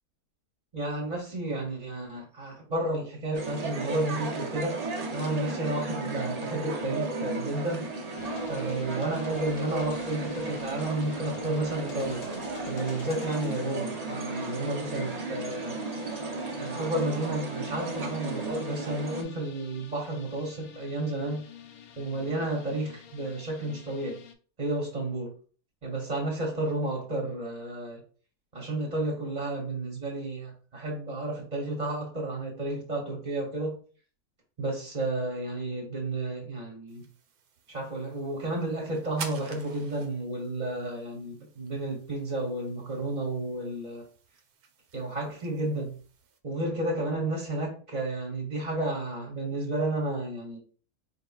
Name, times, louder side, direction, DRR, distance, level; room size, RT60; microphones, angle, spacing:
voice 1, 0.7-4.8 5.1-7.9 8.5-12.2 12.7-15.8 16.6-21.4 22.0-24.2 24.6-25.3 25.8-28.0 28.5-33.8 34.6-37.0 37.7-44.0 44.9-46.0 46.4-50.6, right 2 dB, 30° right, -1 dB, 0.9 m, -32 dB
sound 1, 3.3-19.2, right 3 dB, 50° right, 0.5 m, -35 dB
sound 2, 8.2-24.3, left 7 dB, 70° left, 1.0 m, -48 dB
sound 3, 36.9-46.4, right 5 dB, 80° right, 1.2 m, -49 dB
4.5 x 3.6 x 2.3 m, 0.41 s
omnidirectional pair, 1.6 m